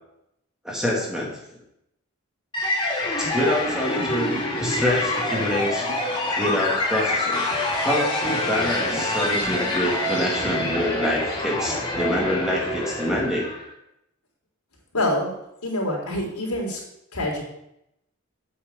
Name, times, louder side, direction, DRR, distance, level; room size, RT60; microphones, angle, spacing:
voice 1, 0.6-1.3 3.2-5.9 6.4-7.4 7.8-13.5, left 1 dB, 5° right, -3 dB, 2.3 m, -26 dB
sound 1, 2.5-13.7, left 1 dB, 20° left, 3.0 m, -26 dB
voice 2, 14.9-15.3 15.6-16.8 17.1-17.4, left 1 dB, 85° left, -2 dB, 3.6 m, -25 dB
8.2 x 6.3 x 8.0 m, 0.80 s
head